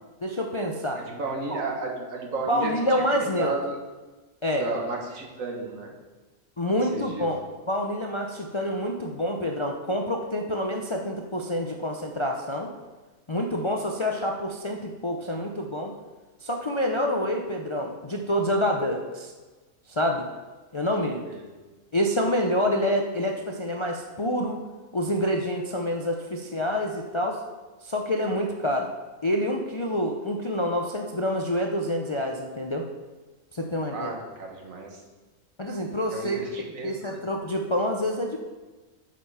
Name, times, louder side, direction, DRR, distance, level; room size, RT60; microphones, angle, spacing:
voice 1, 0.2-1.0 1.5-1.6 2.5-3.5 4.4-4.6 6.6-7.4 7.7-12.7 13.3-15.9 16.4-19.3 19.9-20.3 20.7-21.2 21.9-24.6 24.9-27.4 27.8-28.9 29.2-32.8 33.5-34.1 35.6-36.4 36.8-38.4, equal, 35° left, 2 dB, 0.4 m, -27 dB
voice 2, 0.9-2.7 3.1-3.8 4.6-5.9 6.9-7.3 21.3-21.6 33.9-35.0 36.1-37.2, right 3 dB, 80° right, 1 dB, 1.8 m, -33 dB
7.6 x 5.7 x 5.6 m, 1.3 s
omnidirectional pair, 1.4 m